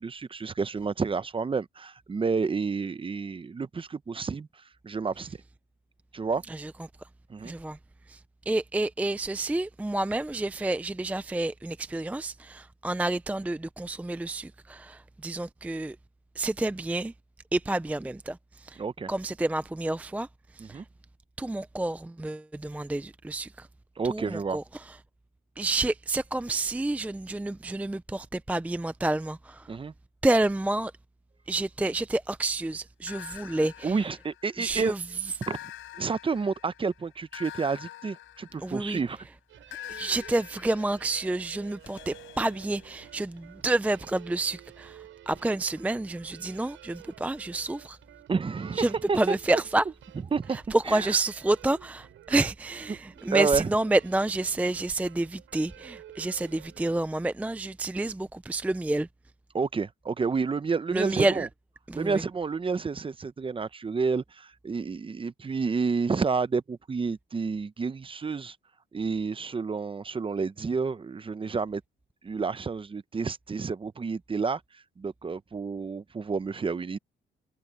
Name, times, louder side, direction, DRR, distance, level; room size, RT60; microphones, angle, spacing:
voice 1, 0.0-4.5 4.8-5.4 6.1-6.4 7.3-7.5 18.8-19.1 20.6-20.8 24.0-24.6 29.7-29.9 33.8-34.9 35.5-35.6 36.0-39.2 48.3-49.3 50.3-50.6 50.9-51.1 53.3-53.7 59.5-61.5 61.9-68.6 68.9-71.8 72.2-74.6 75.0-77.0, right 4 dB, 25° right, 0.8 m, -30 dB
voice 2, 7.4-7.8 8.1-8.2 8.5-16.0 16.4-17.1 17.5-18.8 19.1-20.3 20.5-20.8 21.4-23.7 24.0-25.0 25.6-29.7 30.2-30.9 31.5-34.1 34.6-35.3 38.6-39.0 39.7-48.0 48.7-49.9 50.5-59.1 60.9-61.5 61.9-62.2, right 2 dB, 5° right, 0.4 m, -29 dB
sound 1, 33.1-34.8 35.4-39.1 39.7-43.4, left 15 dB, 85° left, 4.0 m, -46 dB
sound 2, 39.5-57.0, right 12 dB, 80° right, 7.3 m, -51 dB
cardioid pair, 90°, 20 cm